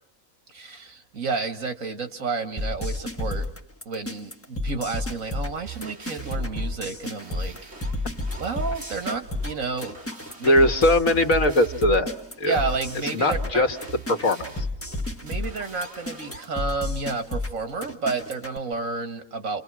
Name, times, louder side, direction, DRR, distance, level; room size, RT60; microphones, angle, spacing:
voice 1, 0.5-3.5 3.9-7.7 8.4-10.0 10.4-10.7 11.9-12.0 12.4-13.6 15.2-19.6, right 4 dB, 70° right, 7 dB, 2.2 m, -31 dB
sound 1, 2.6-18.6, left 2 dB, 10° left, 1.3 m, -31 dB
sound 2, 5.4-16.4, right 5 dB, 50° right, 2.6 m, -44 dB
voice 2, 10.4-12.1 12.4-12.6 13.1-13.8 14.1-14.7, left 1 dB, 70° left, 5 dB, 2.1 m, -20 dB
29.5 x 28.5 x 6.3 m, 0.69 s
omnidirectional pair, 1.5 m